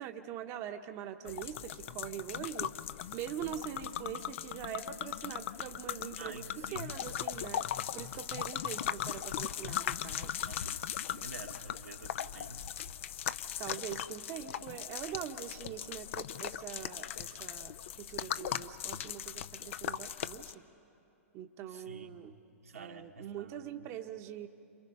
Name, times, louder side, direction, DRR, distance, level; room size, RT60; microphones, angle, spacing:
voice 1, 0.0-2.8 3.1-10.3 13.6-20.6 21.3-22.4 22.7-24.5, right 10 dB, 35° right, 6 dB, 1.0 m, -43 dB
sound 1, 1.2-20.5, left 10 dB, 60° left, 0.7 m, -39 dB
voice 2, 6.2-6.9 10.4-12.6 21.7-22.2 22.6-23.7, right 3 dB, 85° right, 3 dB, 1.7 m, -49 dB
29.0 x 27.5 x 5.5 m, 2.9 s
hypercardioid pair, 110°, 8 cm